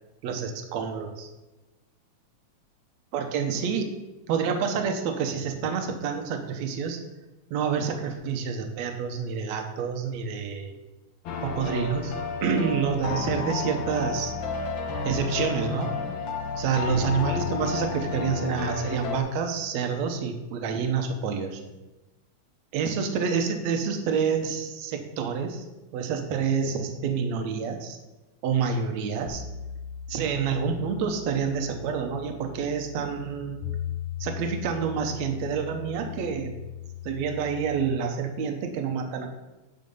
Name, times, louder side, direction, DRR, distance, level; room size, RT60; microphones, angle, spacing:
voice 1, 0.2-1.3 3.1-3.9 4.3-7.0 7.5-10.7 11.4-12.2 12.4-14.3 15.1-15.9 16.5-21.6 22.7-25.7 25.9-28.0 28.4-29.4 30.1-33.7 34.2-36.5 37.0-39.3, right 6 dB, 70° right, 5 dB, 2.2 m, -28 dB
sound 1, 11.3-19.2, left 5 dB, 65° left, 1.2 m, -31 dB
sound 2, 29.3-38.0, left 9 dB, 80° left, 2.2 m, -39 dB
9.4 x 5.7 x 5.4 m, 1.1 s
omnidirectional pair, 3.3 m